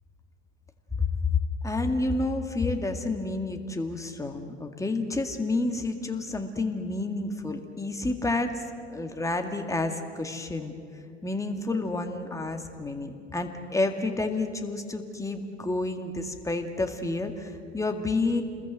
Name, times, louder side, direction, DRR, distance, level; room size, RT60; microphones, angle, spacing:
voice 1, 1.0-8.6 8.9-10.7 11.2-18.4, left 3 dB, 10° left, 6 dB, 2.1 m, -29 dB
28.5 x 21.0 x 7.9 m, 2.3 s
figure-of-eight pair, 65°, 34 cm